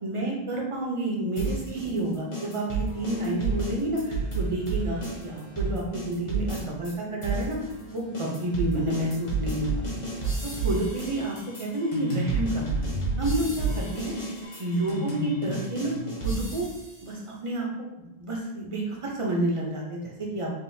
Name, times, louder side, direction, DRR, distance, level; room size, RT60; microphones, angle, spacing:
voice 1, 0.0-7.6 7.9-9.8 10.4-14.1 14.6-16.0 16.2-16.7 17.0-20.5, right 1 dB, 35° right, -2 dB, 0.6 m, -30 dB
sound 1, 1.4-6.9 7.2-17.0, right 3 dB, 30° left, 0.9 m, -31 dB
Boat Water vehicle, 2.6-12.1 12.8-14.5, right 5 dB, 90° left, 1.3 m, -45 dB
3.5 x 2.5 x 2.6 m, 0.95 s
omnidirectional pair, 1.1 m